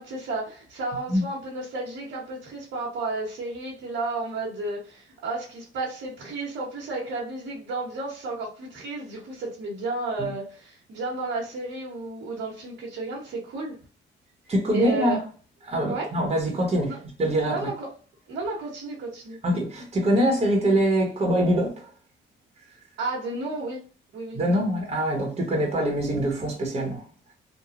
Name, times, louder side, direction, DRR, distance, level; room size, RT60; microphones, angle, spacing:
voice 1, 0.0-13.7 14.7-15.2 15.9-16.1 16.8-17.0 17.5-17.9 18.3-19.4 23.0-23.8 24.1-24.4, right 3 dB, 75° right, 1.2 m, -32 dB
voice 2, 14.5-15.2 15.6-17.7 19.4-21.9 24.3-27.0, equal, 30° right, 1.1 m, -24 dB
3.0 x 2.3 x 2.4 m
cardioid pair, 90°, 20 cm